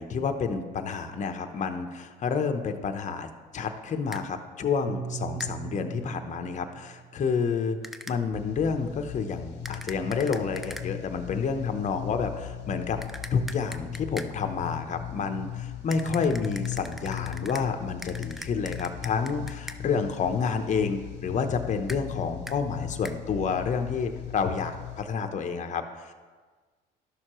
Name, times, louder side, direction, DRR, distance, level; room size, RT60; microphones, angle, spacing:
voice 1, 0.0-7.8 8.1-13.0 13.3-26.1, left 5 dB, 40° left, 6 dB, 0.8 m, -29 dB
sound 1, 4.1-4.2 5.4-5.5 7.8-8.2 9.6-10.9 13.0-14.3 15.9-17.7 18.0-19.8 21.9-22.0 22.5-22.6 23.0-23.2, equal, ahead, 0.4 m, -41 dB
Piano, 4.9-9.3, right 7 dB, 50° right, 0.6 m, -41 dB
sound 2, 8.3-25.0, left 11 dB, 75° left, 0.8 m, -38 dB
11.5 x 6.4 x 3.0 m, 1.4 s
supercardioid pair, 80°, 18 cm